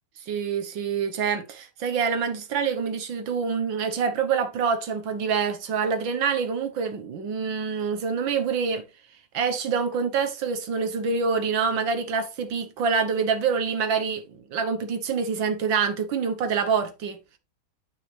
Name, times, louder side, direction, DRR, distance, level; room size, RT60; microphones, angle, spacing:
voice 1, 0.3-8.8 9.3-14.2 14.5-17.2, right 6 dB, 65° right, 1.9 m, -26 dB
9.1 x 5.7 x 3.4 m
omnidirectional pair, 2.4 m